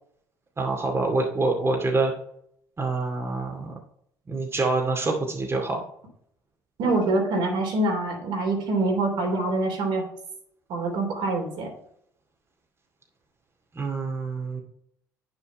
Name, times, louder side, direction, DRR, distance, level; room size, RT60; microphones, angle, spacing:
voice 1, 0.6-2.1 2.8-3.7 4.3-5.8 13.7-14.6, right 3 dB, 30° right, 0 dB, 2.3 m, -26 dB
voice 2, 6.8-10.0 10.7-11.7, right 2 dB, 65° right, 0 dB, 3.2 m, -25 dB
9.2 x 6.4 x 4.5 m, 0.69 s
hypercardioid pair, 55°, 9 cm